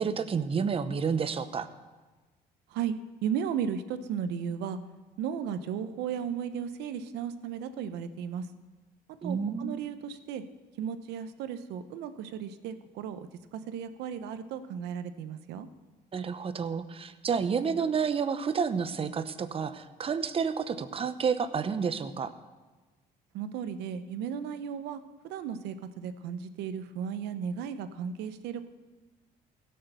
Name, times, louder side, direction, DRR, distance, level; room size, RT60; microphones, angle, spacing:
voice 1, 0.0-1.7 9.2-9.8 16.1-22.3, right 6 dB, 35° right, 11 dB, 0.8 m, -30 dB
voice 2, 3.2-4.8 5.2-8.5 9.2-10.4 10.8-13.2 13.5-15.7 23.3-28.7, right 8 dB, 85° right, 11 dB, 0.8 m, -35 dB
16.5 x 6.6 x 6.7 m, 1.2 s
cardioid pair, 110°, 17 cm